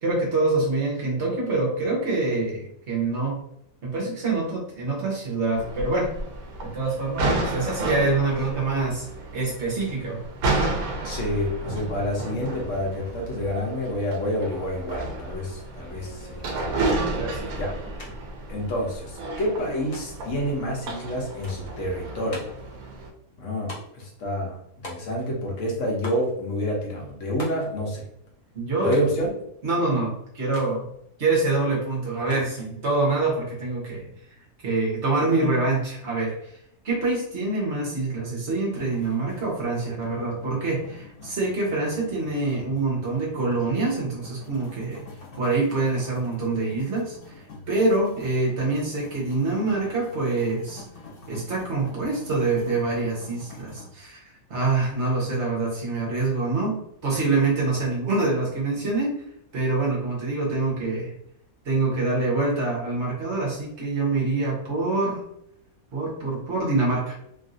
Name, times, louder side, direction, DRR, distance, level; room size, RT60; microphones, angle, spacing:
voice 1, 0.0-3.4 3.8-6.1 6.6-9.0 9.3-10.2 17.2-17.4 28.5-29.0 29.6-30.9 31.2-34.1 34.6-36.5 36.8-45.0 45.4-47.3 47.7-50.8 51.3-54.2 54.5-59.2 59.5-61.1 61.6-65.2 65.9-67.2, right 3 dB, 50° right, -3 dB, 1.2 m, -25 dB
sound 1, 5.5-23.1, right 2 dB, 85° right, 1.2 m, -32 dB
voice 2, 11.0-16.4 17.5-17.8 18.5-22.5 23.4-24.6 24.8-28.1 28.8-29.3, equal, 60° left, -2 dB, 1.2 m, -28 dB
sound 2, 18.0-18.1 18.4-19.1 19.9-20.3 21.4-21.8 22.3-22.7 23.7-24.1 24.8-25.4 26.0-26.3 27.4-27.7 28.9-29.2 30.5-30.8 32.3-32.7, left 1 dB, 35° left, 0.6 m, -40 dB
sound 3, 38.7-53.9, left 2 dB, 90° left, 1.4 m, -46 dB
3.2 x 2.6 x 2.5 m, 0.73 s
omnidirectional pair, 1.5 m